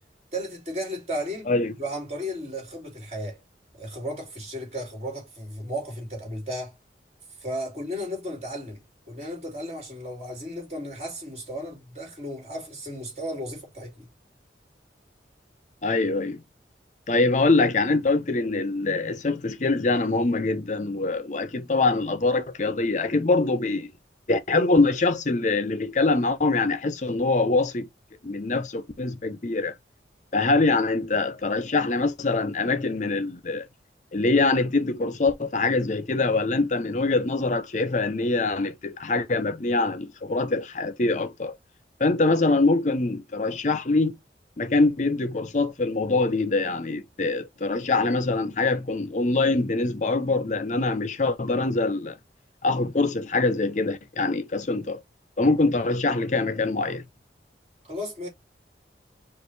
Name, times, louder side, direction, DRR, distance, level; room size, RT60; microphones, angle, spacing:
voice 1, 0.3-1.5 1.8-3.4 3.8-6.8 7.4-8.8 9.1-14.1 57.8-58.3, equal, 35° right, 2.7 m, -34 dB
voice 2, 15.8-16.4 17.1-23.9 24.3-27.9 28.2-29.8 30.3-33.7 34.1-41.6 42.0-44.1 44.6-52.2 52.6-55.0 55.4-57.0, left 3 dB, 40° left, 0.6 m, -24 dB
5.1 x 2.5 x 3.2 m
head